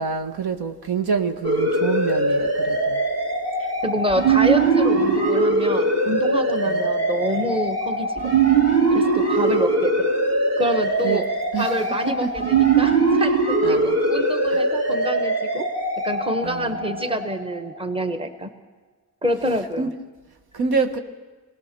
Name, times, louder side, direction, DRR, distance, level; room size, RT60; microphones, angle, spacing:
voice 1, 0.0-3.0 4.9-5.2 6.7-6.9 11.0-11.2 11.5-12.3 13.6-14.0 14.5-14.6 16.4-17.0 19.8-19.9 20.5-21.0, right 5 dB, 70° right, 7 dB, 1.5 m, -27 dB
sound 1, 1.4-17.8, right 3 dB, 40° right, 3.1 m, -21 dB
voice 2, 3.6-8.1 8.9-10.1 10.6-11.3 11.6-15.7 16.0-18.5 19.2-19.9, equal, 15° right, 7 dB, 1.2 m, -27 dB
23.5 x 18.0 x 6.8 m, 1.3 s
wide cardioid pair, 110°, 39 cm